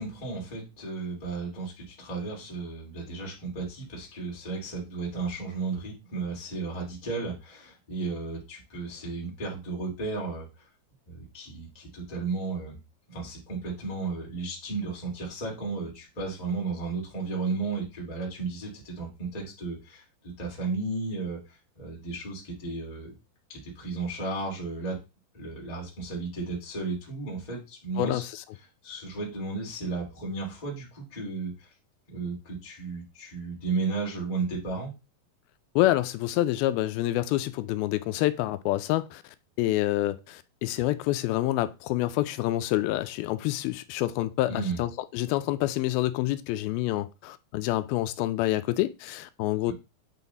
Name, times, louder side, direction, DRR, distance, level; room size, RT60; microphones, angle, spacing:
voice 1, 0.0-10.5 11.1-12.8 13.1-20.0 20.4-21.4 21.8-23.1 23.5-25.0 25.3-28.2 28.8-31.7 32.1-34.9 44.5-44.8, right 3 dB, 15° left, 1.8 m, -34 dB
voice 2, 28.0-28.4 35.8-39.2 39.6-49.7, left 15 dB, 80° left, 2.3 m, -27 dB
8.3 x 4.0 x 4.0 m
omnidirectional pair, 4.5 m